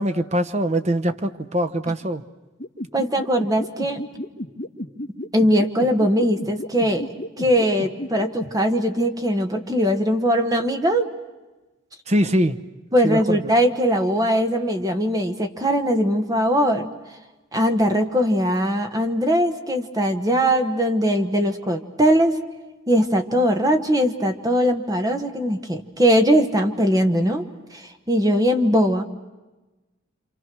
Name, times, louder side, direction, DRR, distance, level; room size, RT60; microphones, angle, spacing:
voice 1, 0.0-2.2 12.1-12.6 13.0-13.4, right 1 dB, 35° right, 9 dB, 1.0 m, -22 dB
sound 1, 2.6-8.5, left 1 dB, 45° left, 1.7 m, -31 dB
voice 2, 2.9-4.0 5.3-11.1 12.9-16.9 17.5-22.4 22.9-27.5 27.7-29.0, equal, 20° right, 6 dB, 1.4 m, -20 dB
28.0 x 27.0 x 6.2 m, 1.1 s
head